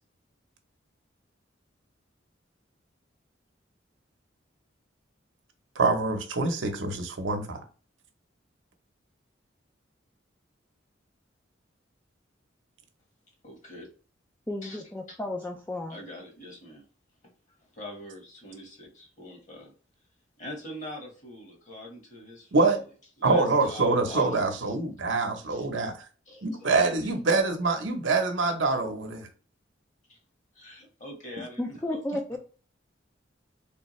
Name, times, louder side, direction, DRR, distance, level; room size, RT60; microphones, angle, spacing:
voice 1, 5.8-7.6 22.5-22.8 23.2-26.0 26.4-29.3, right 3 dB, 75° right, 0.8 m, -25 dB
voice 2, 13.4-13.9 14.6-14.8 15.9-16.8 17.7-19.7 20.4-22.8 23.2-24.7 25.5-25.7 26.3-26.8 30.1-30.2 30.5-32.0, left 1 dB, 40° left, 1.3 m, -43 dB
voice 3, 14.5-16.0 31.6-32.4, left 1 dB, 10° left, 0.4 m, -33 dB
3.4 x 3.3 x 3.1 m
head